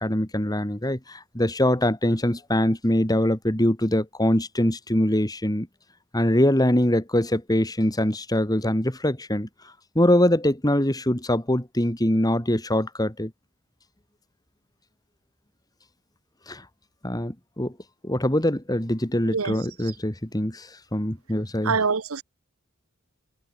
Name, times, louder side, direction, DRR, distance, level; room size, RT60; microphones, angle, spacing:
voice 1, 0.0-5.7 6.1-9.5 9.9-13.3 16.5-16.6 17.0-17.7 18.0-21.8, left 1 dB, 15° left, 2.8 m, -23 dB
voice 2, 21.6-22.2, right 5 dB, 75° right, 1.0 m, -25 dB
head